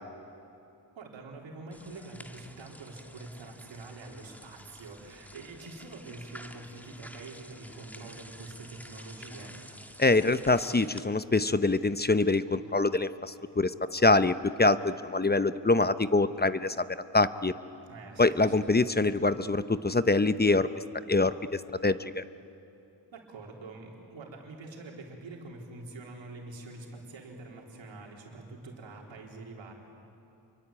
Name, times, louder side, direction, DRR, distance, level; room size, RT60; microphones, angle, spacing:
voice 1, 0.9-9.5 17.9-18.6 23.1-29.7, right 2 dB, 90° right, 0 dB, 4.1 m, -45 dB
sound 1, 1.7-11.0, equal, 5° left, 1.8 m, -50 dB
voice 2, 10.0-16.9 17.1-17.5 18.2-22.2, left 3 dB, 20° left, 13 dB, 0.9 m, -25 dB
28.5 x 23.5 x 8.8 m, 2.8 s
cardioid pair, 55°, 44 cm